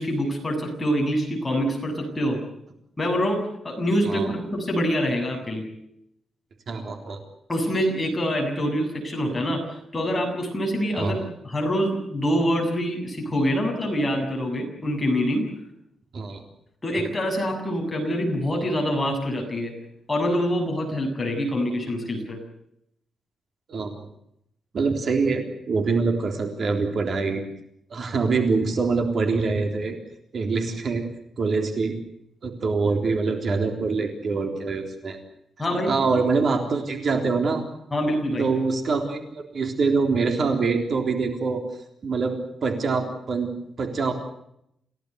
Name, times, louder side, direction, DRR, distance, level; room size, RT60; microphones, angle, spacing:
voice 1, 0.0-2.4 3.0-5.7 7.5-9.6 9.9-15.5 16.8-19.7 20.1-22.4 35.6-36.2 37.9-38.5, equal, 15° left, 2 dB, 7.2 m, -25 dB
voice 2, 6.7-7.2 11.0-11.2 16.1-16.4 16.9-17.1 23.7-23.9 24.7-27.4 27.9-30.0 30.3-31.0 31.4-32.0 32.4-35.2 35.8-37.6 38.4-41.6 42.0-42.4 42.6-43.5 43.8-44.1, right 4 dB, 50° right, 4 dB, 3.7 m, -24 dB
29.0 x 17.0 x 8.1 m, 0.77 s
wide cardioid pair, 140°, 0 cm